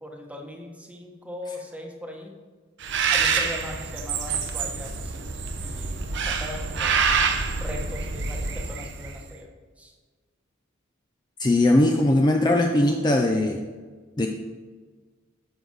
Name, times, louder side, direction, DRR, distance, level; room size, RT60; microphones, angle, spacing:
voice 1, 0.0-2.3 3.1-5.3 5.6-7.0 7.6-9.5 9.8-9.9, left 1 dB, 5° right, 1 dB, 1.1 m, -39 dB
Bird, 2.8-9.2, right 5 dB, 60° right, 0.8 m, -26 dB
voice 2, 11.4-13.6 14.2-14.3, left 1 dB, 20° left, 2 dB, 0.5 m, -20 dB
10.5 x 6.2 x 3.9 m, 1.4 s
head